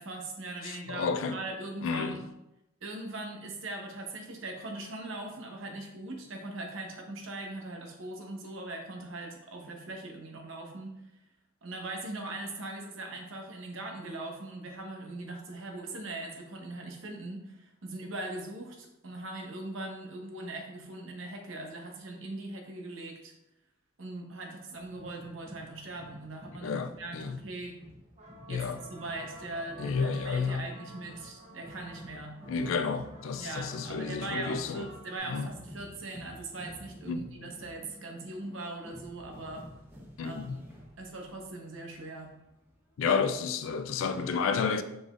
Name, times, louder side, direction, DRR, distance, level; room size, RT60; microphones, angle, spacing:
voice 1, 0.0-2.2 2.8-11.0 11.6-23.3 24.0-27.8 28.5-32.4 33.4-39.7 40.2-40.6 41.0-42.3, right 2 dB, 80° right, 0.8 m, -40 dB
voice 2, 0.6-1.4 1.8-2.2 26.6-27.4 28.5-28.8 29.8-30.6 32.5-34.9 35.3-35.5 37.1-37.3 40.2-40.6 43.0-44.8, left 5 dB, 85° left, 0.4 m, -31 dB
sound 1, 24.7-43.0, equal, 10° right, 0.7 m, -51 dB
sound 2, 28.0-35.2, right 1 dB, 40° right, 0.9 m, -51 dB
5.0 x 3.8 x 2.5 m
head